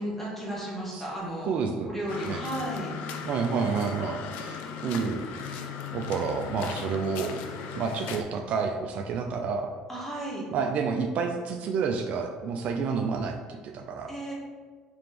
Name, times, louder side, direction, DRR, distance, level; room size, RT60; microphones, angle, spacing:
voice 1, 0.0-1.5 1.9-2.9 9.9-10.4 14.1-14.3, right 1 dB, 10° left, -6 dB, 1.4 m, -34 dB
voice 2, 1.5-1.9 2.2-2.4 3.2-5.2 5.9-9.7 10.5-13.4 13.6-14.2, right 5 dB, 55° right, 3 dB, 0.3 m, -29 dB
sound 1, 2.1-8.2, left 6 dB, 75° left, 0.4 m, -37 dB
3.1 x 2.9 x 3.4 m, 1.5 s
supercardioid pair, 105°, 3 cm